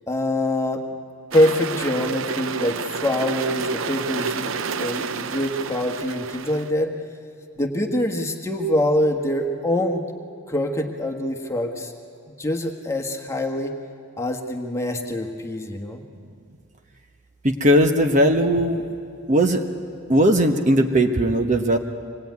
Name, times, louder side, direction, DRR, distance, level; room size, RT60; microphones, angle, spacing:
voice 1, 0.1-0.8 1.3-7.0 7.6-10.0 10.5-11.9 12.4-13.7 14.2-16.0, left 1 dB, 15° left, 2 dB, 1.4 m, -24 dB
sound 1, 1.3-6.7, right 6 dB, 75° right, 0.6 m, -30 dB
voice 2, 17.4-18.8 19.3-19.6 20.1-21.8, equal, 35° right, 5 dB, 1.1 m, -18 dB
25.0 x 19.0 x 9.5 m, 2.4 s
head